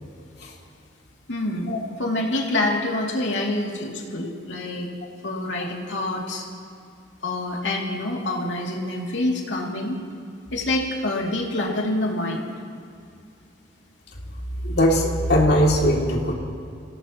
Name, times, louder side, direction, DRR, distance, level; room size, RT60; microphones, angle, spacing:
voice 1, 1.3-4.9 5.2-6.4 7.2-10.0 10.5-12.5, left 1 dB, 90° left, -1 dB, 2.6 m, -26 dB
voice 2, 14.6-16.3, equal, 60° left, -1 dB, 2.6 m, -20 dB
27.5 x 17.5 x 3.0 m, 2.4 s
head